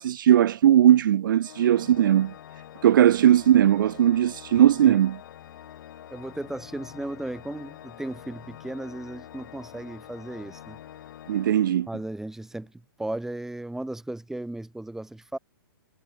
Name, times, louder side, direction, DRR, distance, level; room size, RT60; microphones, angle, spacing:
voice 1, 0.0-2.3 2.8-5.2 11.3-11.9, right 11 dB, 60° right, 1.0 m, -19 dB
Organ, 1.4-12.3, left 11 dB, 60° left, 5.4 m, -46 dB
voice 2, 6.1-10.8 11.9-12.7 13.0-15.4, right 1 dB, 5° right, 6.7 m, -35 dB
hypercardioid pair, 130°, 12 cm